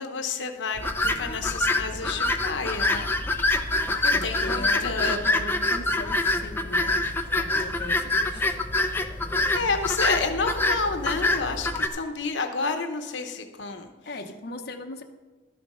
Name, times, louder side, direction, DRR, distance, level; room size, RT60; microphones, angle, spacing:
voice 1, 0.0-3.1 3.9-5.2 9.5-13.9, left 4 dB, 80° left, 6 dB, 0.9 m, -30 dB
sound 1, 0.8-11.9, left 2 dB, 10° left, 0.5 m, -26 dB
voice 2, 4.1-6.9 7.3-8.6 14.0-15.0, left 2 dB, 55° left, 2 dB, 0.9 m, -38 dB
12.0 x 6.8 x 5.5 m, 1.2 s
head